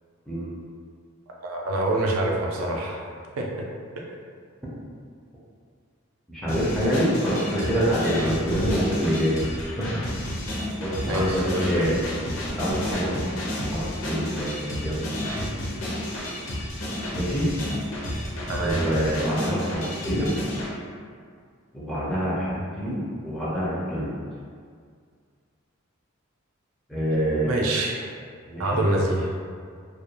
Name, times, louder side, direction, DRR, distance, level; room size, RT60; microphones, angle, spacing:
voice 1, 1.4-3.0 3.4-3.7 8.7-8.8 11.1-11.8 18.5-18.8 27.4-28.0 28.6-29.3, right 1 dB, 75° right, -1 dB, 0.4 m, -25 dB
voice 2, 6.3-9.8 10.7-12.0 12.6-15.1 17.1-17.4 18.6-20.3 21.7-24.1 26.9-27.5 28.5-28.8, equal, ahead, -9 dB, 0.4 m, -26 dB
sound 1, 6.5-20.7, left 1 dB, 70° left, 0.6 m, -31 dB
2.3 x 2.1 x 2.8 m, 2.1 s
head